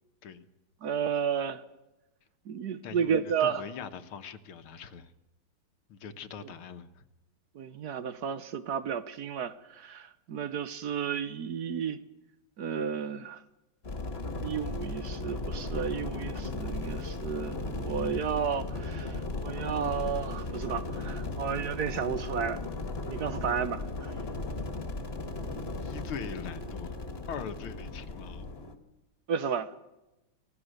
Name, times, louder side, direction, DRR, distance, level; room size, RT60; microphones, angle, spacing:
voice 1, 0.8-1.6 2.5-3.6 7.5-12.0 12.6-13.4 14.4-22.7 23.1-24.1 29.3-29.7, right 7 dB, 60° right, 1.2 m, -32 dB
voice 2, 2.8-5.1 5.9-7.0 25.8-27.0 27.3-28.5, left 7 dB, 85° left, 2.0 m, -42 dB
sound 1, 13.8-28.8, left 2 dB, 30° left, 1.8 m, -36 dB
25.0 x 18.0 x 6.5 m
omnidirectional pair, 2.3 m